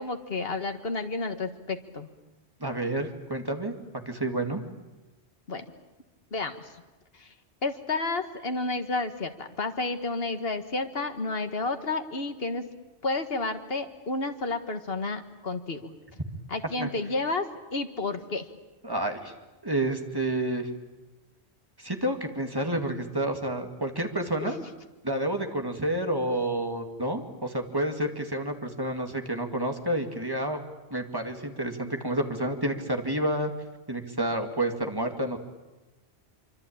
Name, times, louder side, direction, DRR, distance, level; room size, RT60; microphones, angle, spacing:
voice 1, 0.0-2.1 5.5-5.7 6.3-6.7 7.2-7.3 7.6-12.7 13.0-15.9 16.5-18.5 24.4-24.6, left 3 dB, 60° left, 7 dB, 1.9 m, -31 dB
voice 2, 2.6-3.7 4.1-4.6 16.8-16.9 18.8-19.3 19.6-20.7 21.8-24.6 25.0-30.6 30.9-33.5 33.9-35.4, right 1 dB, 20° right, 4 dB, 2.3 m, -29 dB
25.5 x 25.0 x 8.8 m, 1.1 s
omnidirectional pair, 1.1 m